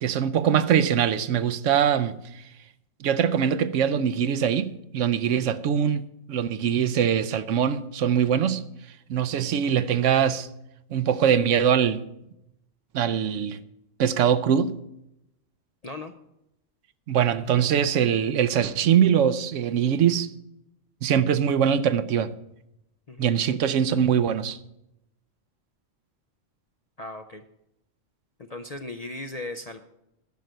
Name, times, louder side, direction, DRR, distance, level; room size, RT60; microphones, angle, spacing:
voice 1, 0.0-2.1 3.0-6.0 6.3-8.6 9.1-10.5 10.9-12.0 12.9-13.6 14.0-14.7 17.1-20.3 21.0-22.3 23.2-24.6, right 8 dB, 70° right, 1.0 m, -22 dB
voice 2, 27.0-27.4 28.4-29.8, left 2 dB, 45° left, 0.5 m, -37 dB
10.5 x 6.5 x 9.2 m
omnidirectional pair, 1.3 m